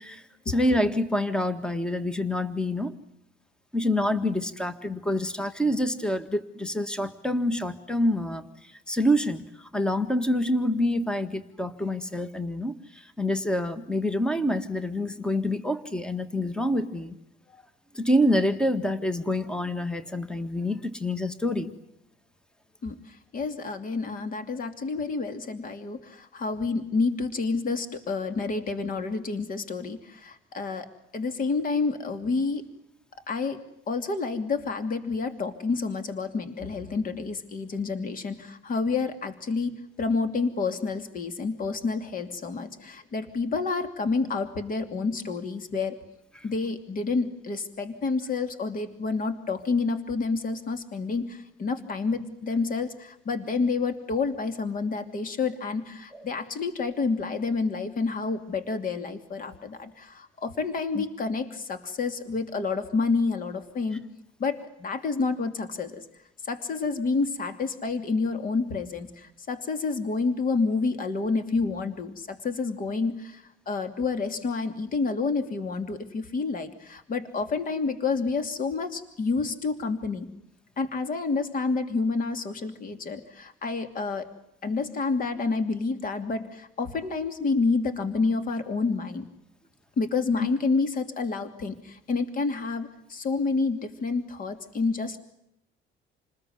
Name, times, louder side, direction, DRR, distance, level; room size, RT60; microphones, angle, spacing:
voice 1, 0.0-3.0 3.7-17.2 17.5-17.6 17.9-21.7 56.1-56.3 61.0-61.1, left 1 dB, 5° left, 11 dB, 1.7 m, -27 dB
voice 2, 22.8-30.9 31.1-32.7 33.3-33.6 33.9-39.7 40.0-46.0 46.4-64.0 64.4-66.0 66.4-80.3 80.8-84.3 84.6-89.3 90.0-95.2, left 4 dB, 45° left, 9 dB, 2.9 m, -29 dB
29.0 x 20.5 x 9.5 m, 0.80 s
cardioid pair, 125°, 20 cm